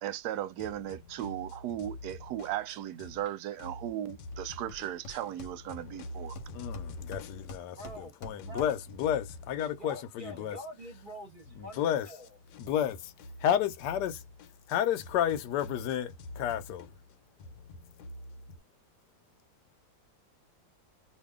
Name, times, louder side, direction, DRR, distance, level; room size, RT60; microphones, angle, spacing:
voice 1, 0.0-6.4, right 12 dB, 70° right, 1.1 m, -36 dB
sound 1, 0.6-3.3 3.6-8.1 8.4-18.6, left 2 dB, 85° left, 1.4 m, -47 dB
Hammer, 4.3-4.4 4.7-6.0 6.4-9.0, left 2 dB, 50° left, 1.0 m, -48 dB
voice 2, 6.5-10.6 11.6-12.1 12.6-13.1 13.4-14.2 14.7-16.9, left 10 dB, 70° left, 1.2 m, -31 dB
voice 3, 7.7-8.1 8.5-8.7 9.8-12.3, equal, 35° right, 0.9 m, -45 dB
2.7 x 2.7 x 3.5 m
omnidirectional pair, 2.0 m